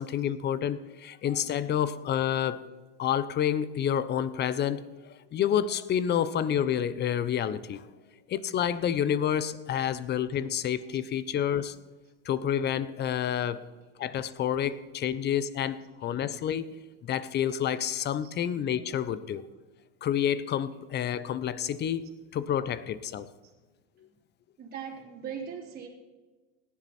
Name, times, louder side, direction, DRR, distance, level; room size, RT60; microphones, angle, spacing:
voice 1, 0.0-2.6 3.0-7.9 8.3-11.8 12.2-13.6 14.0-16.7 17.0-19.5 20.0-22.1 22.3-23.3, left 9 dB, 30° left, 16 dB, 0.9 m, -29 dB
voice 2, 15.8-16.1 18.2-18.3 22.6-22.8 23.4-23.5 24.6-25.9, right 7 dB, 30° right, -4 dB, 3.5 m, -42 dB
17.5 x 11.0 x 4.4 m, 1.3 s
supercardioid pair, 115°, 32 cm